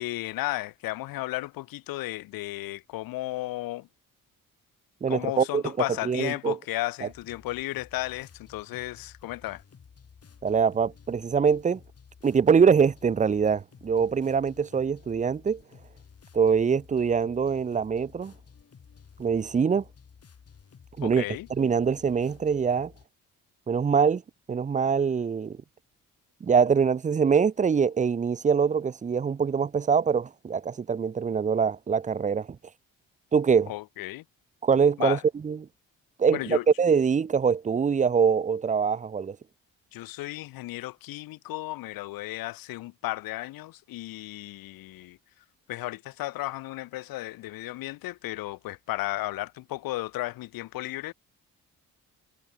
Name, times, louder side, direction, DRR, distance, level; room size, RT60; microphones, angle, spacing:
voice 1, 0.0-3.9 5.1-9.6 21.0-21.5 33.7-34.2 35.0-35.2 36.3-36.7 39.9-45.2 45.7-51.1, left 17 dB, 80° left, 0.6 m, -34 dB
voice 2, 5.0-5.6 6.1-6.6 10.4-11.8 12.2-15.6 16.3-18.3 19.2-19.8 21.0-21.2 21.5-22.9 23.7-24.2 24.5-25.6 26.4-32.5 33.3-33.7 34.6-35.2 35.4-35.6 36.2-39.4, right 6 dB, 20° right, 0.5 m, -23 dB
sound 1, 7.1-23.1, left 6 dB, 45° left, 4.7 m, -53 dB
cardioid pair, 90°, 34 cm